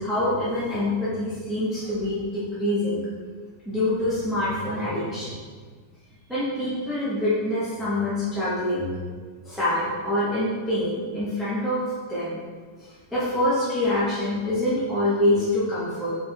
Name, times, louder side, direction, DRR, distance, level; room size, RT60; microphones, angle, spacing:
voice 1, 0.0-3.0 3.6-5.3 6.3-8.9 9.4-11.8 12.1-12.4 12.8-16.1, left 1 dB, ahead, -11 dB, 1.4 m, -25 dB
8.4 x 3.6 x 3.7 m, 1.5 s
omnidirectional pair, 1.7 m